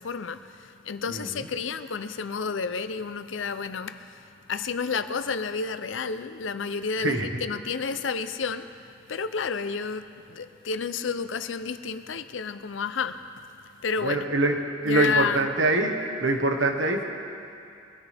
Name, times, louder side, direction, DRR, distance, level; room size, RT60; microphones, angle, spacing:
voice 1, 0.0-8.7 9.1-13.2 13.8-14.3 14.8-15.5, left 5 dB, 90° left, 11 dB, 0.6 m, -30 dB
voice 2, 14.0-14.6 14.8-17.0, right 2 dB, 90° right, 3 dB, 1.5 m, -24 dB
23.0 x 14.0 x 3.5 m, 2.5 s
head